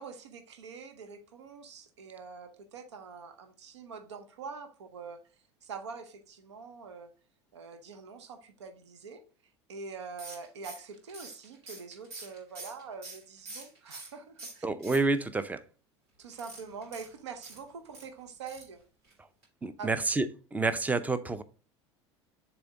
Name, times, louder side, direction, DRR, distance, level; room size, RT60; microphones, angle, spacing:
voice 1, 0.0-5.2 5.6-7.1 7.5-9.2 9.7-14.7 16.2-18.8 19.8-19.9, right 5 dB, 75° right, 0.8 m, -44 dB
sound 1, 10.2-14.1 14.4-15.4 16.3-18.1 18.5-18.8 19.0-19.1 19.4-19.5, right 3 dB, 55° right, 3.4 m, -46 dB
voice 2, 14.6-15.6 19.6-21.4, right 3 dB, 10° right, 0.5 m, -29 dB
7.0 x 3.5 x 3.8 m
figure-of-eight pair, 75°, 15 cm